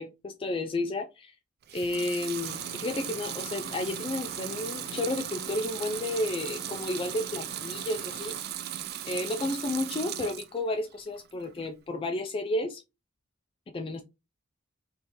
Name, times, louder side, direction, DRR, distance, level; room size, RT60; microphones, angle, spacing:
voice 1, 0.0-1.3 1.7-8.4 9.1-12.8 13.7-14.0, left 2 dB, 25° left, 0.3 m, -32 dB
Water tap faucet / Sink (filling or washing) / Liquid, 1.6-10.6 11.0-11.7, right 11 dB, 50° right, 0.3 m, -37 dB
sound 1, 2.4-8.4, left 3 dB, 75° left, 0.8 m, -47 dB
3.6 x 2.6 x 2.8 m
head